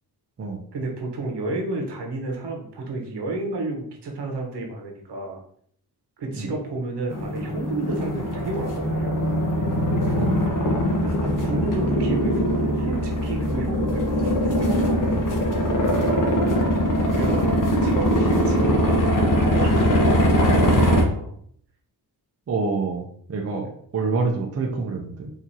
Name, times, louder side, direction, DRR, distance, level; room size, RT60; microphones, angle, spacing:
voice 1, 0.7-5.4 6.2-9.2 11.0-15.4 17.1-21.3, right 2 dB, 80° right, 0 dB, 1.2 m, -31 dB
sound 1, 7.1-21.0, equal, 50° left, 1.1 m, -21 dB
voice 2, 22.5-23.0 23.3-25.3, right 4 dB, 40° right, 1 dB, 0.6 m, -27 dB
4.5 x 2.8 x 2.7 m, 0.62 s
cardioid pair, 90°, 40 cm